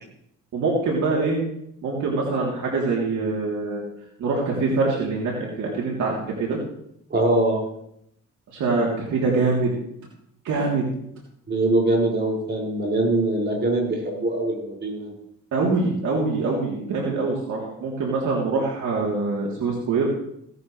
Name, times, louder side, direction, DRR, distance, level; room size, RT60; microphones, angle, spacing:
voice 1, 0.5-1.4 1.8-3.8 4.2-6.6 8.5-9.7 10.4-10.9 15.5-20.1, right 3 dB, 70° right, -3 dB, 3.3 m, -24 dB
voice 2, 7.1-7.6 11.5-15.1, right 2 dB, 35° right, -2 dB, 5.8 m, -23 dB
17.0 x 12.0 x 3.3 m, 0.74 s
cardioid pair, 90°, 30 cm